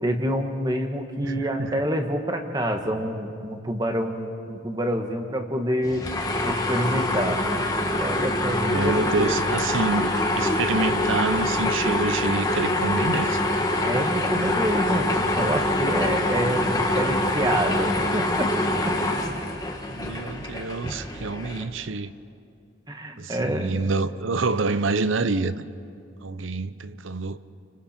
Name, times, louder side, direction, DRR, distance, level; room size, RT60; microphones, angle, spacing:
voice 1, 0.0-6.1 6.4-7.4 8.0-9.4 13.8-18.5 18.9-19.0 22.9-23.9, equal, 20° right, 1.5 m, -27 dB
voice 2, 1.2-1.8 8.6-13.4 19.9-22.1 23.2-25.7 26.2-27.4, right 3 dB, 80° right, 0.7 m, -27 dB
sound 1, 5.8-21.6, left 1 dB, 20° left, 1.5 m, -25 dB
30.0 x 25.0 x 4.4 m
head